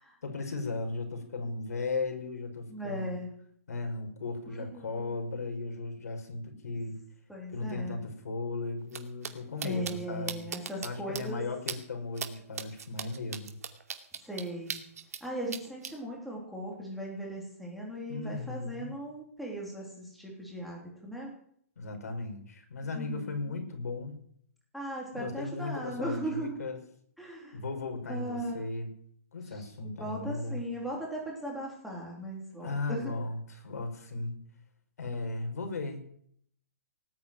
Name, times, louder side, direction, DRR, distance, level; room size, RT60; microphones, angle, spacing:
voice 1, 0.2-3.1 3.7-6.9 7.5-10.5 10.8-13.5 18.1-18.9 21.8-24.1 25.1-26.8 27.3-28.9 29.3-30.6 32.6-34.4 35.0-36.0, left 3 dB, 75° left, 5 dB, 5.4 m, -36 dB
voice 2, 2.7-3.3 4.5-5.0 7.3-8.0 9.6-11.4 14.2-14.8 15.2-21.3 22.9-23.6 24.7-26.5 27.2-27.6 28.1-28.6 29.5-29.6 30.0-33.1, right 1 dB, ahead, -3 dB, 3.2 m, -38 dB
sound 1, 8.9-9.0 9.2-9.3 9.6-9.9 10.3-10.9 11.1-11.2 11.7-11.8 12.2-12.3 12.6-15.2 15.5-15.9, right 7 dB, 70° right, 2.5 m, -37 dB
19.0 x 8.2 x 9.2 m, 0.67 s
hypercardioid pair, 175°, 9 cm